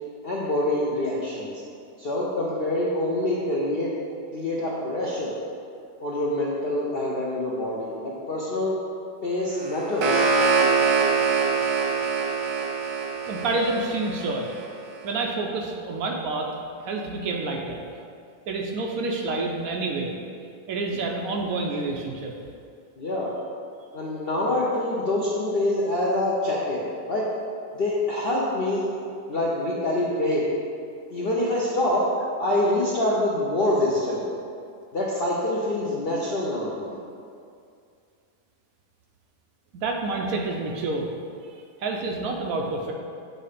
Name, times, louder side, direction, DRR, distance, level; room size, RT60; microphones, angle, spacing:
voice 1, 0.2-1.5 2.0-3.9 4.3-5.4 6.0-8.8 9.2-10.2 20.9-21.1 23.0-23.3 23.9-27.3 27.7-30.4 31.1-32.0 32.4-34.2 34.9-37.0, left 1 dB, 60° left, -6 dB, 0.6 m, -26 dB
sound 1, 9.6-14.7, right 5 dB, 90° right, 1.5 m, -24 dB
voice 2, 13.2-14.5 15.0-17.8 18.5-20.1 20.7-22.3 39.7-41.1 41.8-42.9, right 3 dB, 70° right, 1 dB, 0.9 m, -28 dB
7.6 x 2.8 x 4.9 m, 2.4 s
omnidirectional pair, 1.8 m